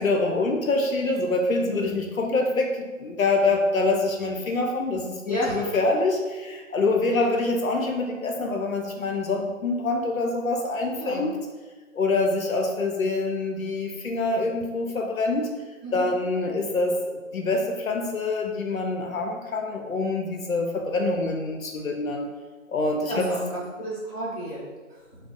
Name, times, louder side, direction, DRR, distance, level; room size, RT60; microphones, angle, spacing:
voice 1, 0.0-11.3 11.9-15.5 15.9-22.3 22.7-23.3, left 2 dB, 80° left, 2 dB, 0.5 m, -25 dB
voice 2, 1.6-1.9 5.2-5.6 7.1-7.2 11.0-11.3 15.8-16.2 23.1-25.0, equal, 30° left, -10 dB, 0.8 m, -32 dB
2.4 x 2.3 x 3.4 m, 1.3 s
figure-of-eight pair, 165°, 41 cm